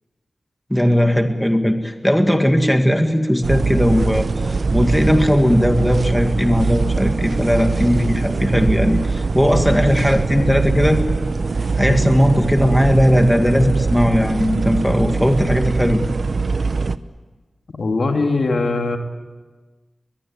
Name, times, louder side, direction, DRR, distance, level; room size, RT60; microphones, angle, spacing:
voice 1, 0.7-4.3 4.7-11.0 11.8-16.0, equal, 5° left, 5 dB, 2.1 m, -17 dB
sound 1, 3.4-17.0, right 4 dB, 60° right, 0.8 m, -22 dB
voice 2, 17.8-19.0, left 3 dB, 65° left, 4 dB, 2.4 m, -21 dB
21.5 x 21.5 x 8.9 m, 1.3 s
wide cardioid pair, 90°, 0 cm